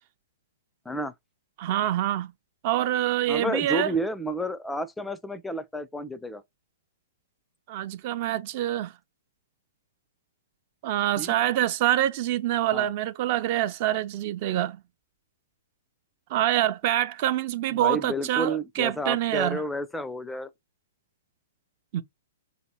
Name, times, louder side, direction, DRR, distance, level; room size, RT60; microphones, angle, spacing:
voice 1, 1.6-2.3 2.6-3.9 7.7-8.9 10.8-14.8 16.3-19.6 21.9-22.0, right 12 dB, 40° right, 0.6 m, -26 dB
voice 2, 3.3-6.4 11.2-11.4 12.7-12.9 17.7-20.5, equal, 5° left, 0.4 m, -31 dB
5.1 x 2.8 x 2.9 m
figure-of-eight pair, 115°, 0 cm